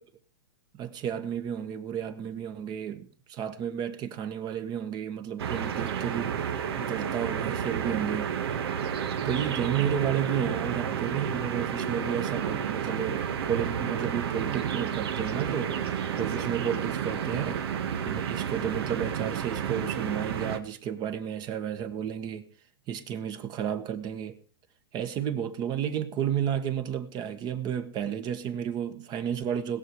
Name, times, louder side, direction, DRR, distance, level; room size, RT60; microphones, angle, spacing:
voice 1, 0.7-6.5 6.7-8.3 9.2-15.8 16.2-17.7 18.0-22.5 22.9-24.4 24.9-29.8, right 9 dB, 30° right, 1.5 m, -32 dB
sound 1, 5.4-20.6, right 8 dB, 70° right, 1.8 m, -31 dB
20.5 x 7.1 x 4.9 m
hypercardioid pair, 130°, 13 cm